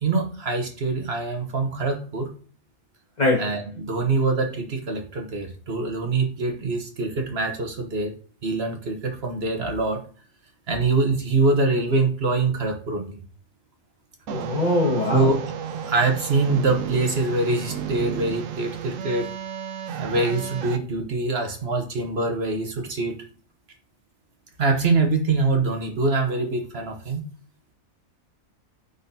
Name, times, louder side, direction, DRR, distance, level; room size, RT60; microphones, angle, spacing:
voice 1, 0.0-2.3 3.4-8.1 8.4-10.0 10.7-13.2 15.1-15.4 15.8-19.3 20.0-23.2 24.6-27.2, right 3 dB, 50° right, 1.3 m, -24 dB
voice 2, 14.3-15.3, left 2 dB, 35° left, 1.6 m, -22 dB
sound 1, 14.3-20.8, right 8 dB, 80° right, 1.0 m, -32 dB
12.0 x 4.0 x 2.7 m
omnidirectional pair, 1.4 m